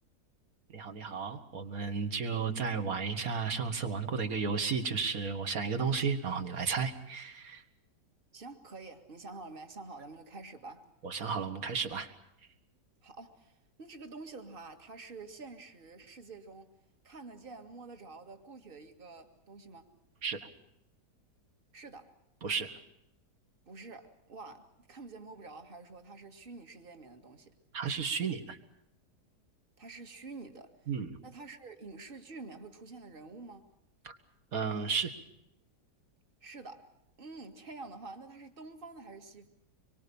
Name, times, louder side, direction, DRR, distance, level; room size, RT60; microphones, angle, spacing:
voice 1, 0.7-7.6 11.0-12.1 20.2-20.5 22.4-22.7 27.7-28.6 30.9-31.2 34.0-34.2 34.5-35.1, right 5 dB, 55° right, 2.2 m, -33 dB
voice 2, 8.3-10.9 13.0-16.7 17.0-19.9 21.7-22.1 23.7-27.5 29.8-30.9 31.2-33.7 36.4-36.9 37.2-39.5, right 3 dB, 30° right, 2.1 m, -48 dB
25.5 x 23.5 x 7.0 m
omnidirectional pair, 1.8 m